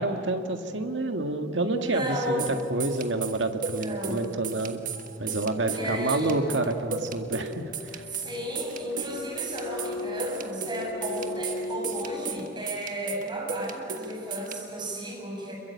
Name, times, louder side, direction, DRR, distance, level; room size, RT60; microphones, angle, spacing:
voice 1, 0.0-2.4 2.7-4.9 5.2-7.6 7.9-8.0, right 2 dB, 90° right, 6 dB, 1.7 m, -28 dB
voice 2, 1.7-2.6 3.8-4.2 5.7-6.3 8.1-15.6, equal, 25° right, -2 dB, 7.7 m, -34 dB
sound 1, 2.4-14.5, right 5 dB, 50° right, 1.5 m, -36 dB
sound 2, 5.5-12.5, left 2 dB, 90° left, 2.7 m, -39 dB
27.5 x 22.5 x 8.3 m, 2.6 s
head